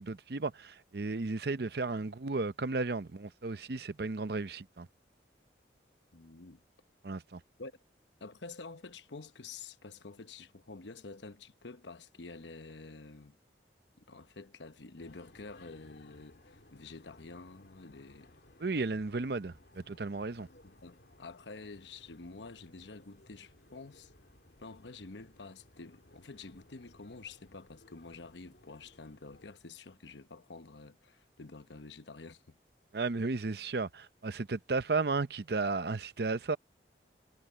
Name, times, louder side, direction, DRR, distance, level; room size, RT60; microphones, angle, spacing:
voice 1, 0.0-4.9 7.0-7.4 18.6-20.5 32.9-36.6, right 3 dB, 60° right, 0.7 m, -34 dB
voice 2, 6.1-6.6 7.6-7.7 8.2-13.4 14.0-18.3 20.6-24.1 24.6-32.6, left 3 dB, 85° left, 1.0 m, -49 dB
sound 1, 15.0-29.5, left 1 dB, 70° left, 2.5 m, -61 dB
head